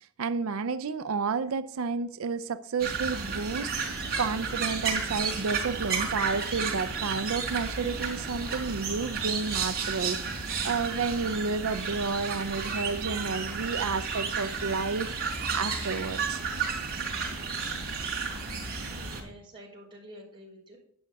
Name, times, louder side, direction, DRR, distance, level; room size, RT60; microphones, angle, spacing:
voice 1, 0.0-16.4, right 4 dB, 70° right, 0.5 m, -31 dB
sound 1, 2.8-19.2, right 5 dB, 45° right, 4.4 m, -32 dB
voice 2, 13.0-13.7 18.9-20.8, equal, 25° right, 5.4 m, -51 dB
11.5 x 9.4 x 3.5 m
head